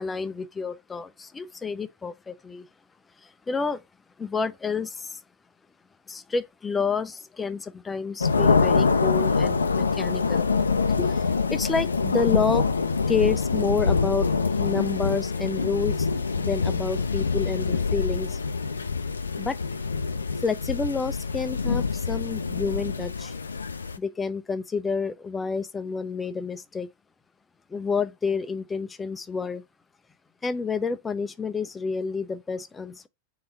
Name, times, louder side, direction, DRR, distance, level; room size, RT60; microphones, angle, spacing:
voice 1, 0.0-2.7 3.2-3.8 4.2-5.2 6.1-10.5 11.0-12.7 13.1-14.3 14.6-16.1 16.4-18.4 19.4-19.6 20.4-23.3 24.0-26.9 27.7-29.6 30.4-33.1, left 5 dB, 15° left, 0.5 m, -29 dB
sound 1, 8.2-24.0, left 4 dB, 75° left, 0.4 m, -25 dB
3.7 x 3.5 x 4.2 m
figure-of-eight pair, 90°, 0 cm